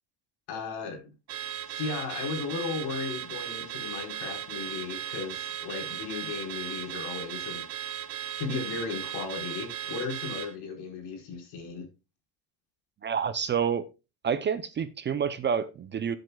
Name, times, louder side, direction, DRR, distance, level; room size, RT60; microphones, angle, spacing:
voice 1, 0.5-1.1 1.7-7.6 8.4-11.9, left 4 dB, 70° left, 4.4 m, -35 dB
Car / Alarm, 1.3-10.5, right 11 dB, 40° right, 1.0 m, -37 dB
voice 2, 13.0-13.8 14.2-16.2, right 7 dB, 25° right, 0.5 m, -28 dB
13.5 x 8.0 x 2.3 m
cardioid pair, 145°, 42 cm